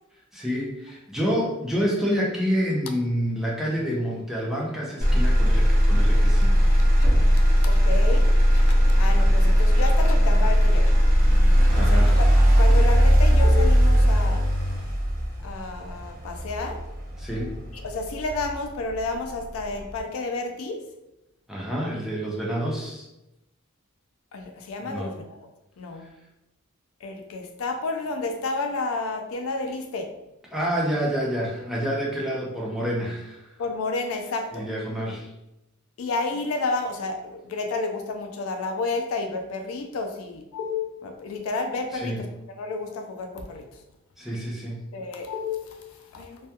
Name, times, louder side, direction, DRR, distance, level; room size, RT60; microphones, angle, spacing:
voice 1, 0.3-6.7 11.7-12.1 17.2-17.5 21.5-23.0 24.9-25.1 30.5-33.5 34.5-35.3 41.9-42.2 44.2-44.8, equal, ahead, -4 dB, 0.4 m, -28 dB
Motor vehicle (road), 5.0-19.0 19.5-20.0, equal, 40° right, 0.8 m, -18 dB
voice 2, 7.6-8.7 9.0-10.9 11.8-12.3 12.6-14.5 15.4-16.8 17.7-20.8 24.3-25.4 25.8-26.0 27.0-30.1 33.6-34.6 36.0-43.7 44.9-46.5, left 3 dB, 70° left, 4 dB, 0.4 m, -31 dB
2.2 x 2.2 x 2.8 m, 0.92 s
head